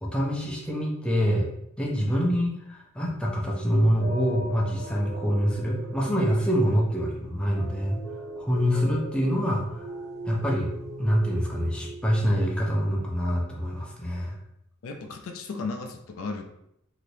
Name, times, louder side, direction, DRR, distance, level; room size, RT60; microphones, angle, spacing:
voice 1, 0.0-1.5 1.8-8.0 8.4-9.8 10.3-14.4, equal, 5° left, -3 dB, 0.5 m, -25 dB
sound 1, 4.0-12.4, right 1 dB, 50° right, 1.4 m, -40 dB
voice 2, 14.8-16.4, left 3 dB, 65° left, 4 dB, 0.4 m, -35 dB
3.3 x 2.8 x 2.6 m, 0.78 s
head